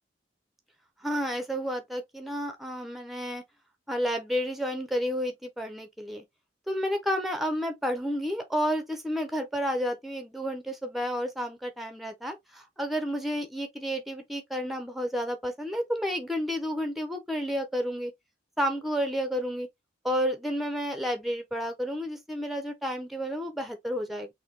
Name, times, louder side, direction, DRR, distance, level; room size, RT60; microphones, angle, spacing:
voice 1, 1.0-3.4 3.9-6.2 6.7-18.1 18.6-19.7 20.0-24.3, equal, ahead, 0.5 m, -31 dB
3.7 x 2.6 x 2.7 m
head